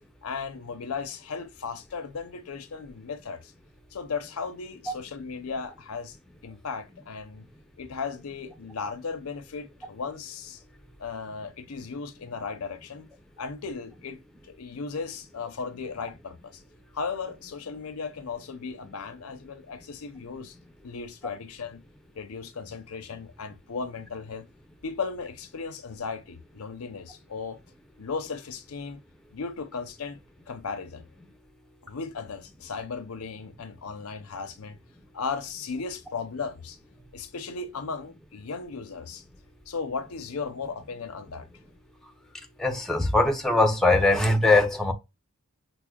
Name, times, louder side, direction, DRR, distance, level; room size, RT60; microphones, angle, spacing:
voice 1, 0.2-3.5 3.9-6.2 6.4-7.5 7.8-10.6 11.0-13.1 13.4-14.2 14.4-16.6 16.9-20.6 20.8-21.8 22.1-24.5 24.8-27.6 28.0-29.0 29.3-30.2 30.5-31.1 31.8-34.8 35.1-36.8 37.1-39.2 39.7-41.5, left 5 dB, 80° left, 0.6 m, -36 dB
voice 2, 42.6-44.9, left 2 dB, ahead, 0.5 m, -21 dB
5.9 x 2.1 x 2.2 m
head